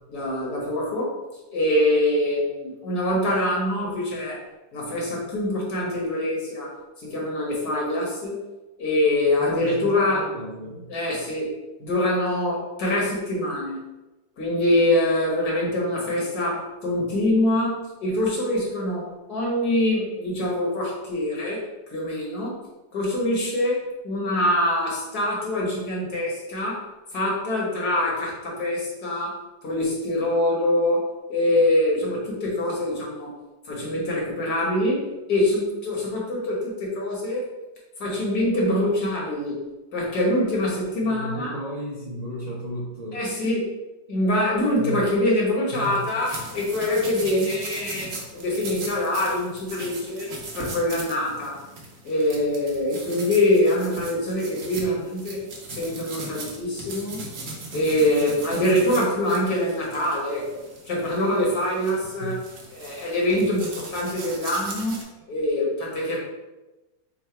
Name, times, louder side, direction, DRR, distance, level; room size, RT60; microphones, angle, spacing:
voice 1, 0.1-1.2 1.5-4.4 4.7-8.4 8.8-10.3 10.9-11.5 11.8-13.9 14.4-22.6 22.9-26.8 27.1-33.4 33.6-37.5 38.0-39.6 39.9-41.5 43.1-43.7 44.1-51.6 52.0-57.2 57.7-60.6 60.8-62.4 62.7-66.2, left 1 dB, 65° left, -3 dB, 1.6 m, -24 dB
voice 2, 9.4-10.9 41.0-43.2 44.7-45.0 45.7-46.1 62.2-62.4, right 1 dB, 35° right, -8 dB, 0.6 m, -34 dB
sound 1, 45.7-65.0, right 3 dB, 60° right, 1.0 m, -39 dB
3.8 x 2.1 x 4.3 m, 1.1 s
omnidirectional pair, 1.8 m